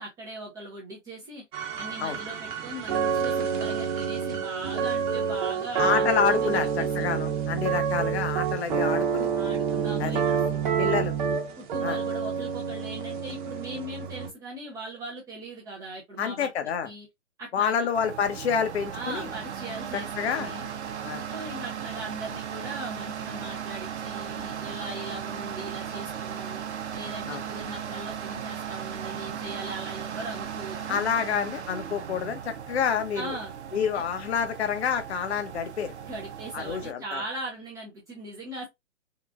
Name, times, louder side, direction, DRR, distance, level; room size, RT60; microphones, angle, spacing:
voice 1, 0.0-1.4 1.8-7.1 9.4-11.0 11.6-16.5 16.8-17.1 17.4-17.9 18.9-20.6 21.3-26.6 26.9-31.0 33.1-33.6 36.0-38.7, right 1 dB, 10° right, 0.5 m, -39 dB
sound 1, 1.5-14.3, right 6 dB, 40° right, 1.0 m, -28 dB
voice 2, 5.8-9.3 10.0-10.2 10.8-11.1 11.8-12.0 16.2-16.9 17.5-19.3 20.2-20.5 21.0-21.2 27.3-27.4 30.9-33.3 33.7-35.9 36.5-37.2, left 7 dB, 60° left, 0.8 m, -28 dB
sound 2, 17.9-36.9, right 8 dB, 60° right, 0.8 m, -37 dB
3.7 x 2.3 x 2.4 m
figure-of-eight pair, 125°, 37 cm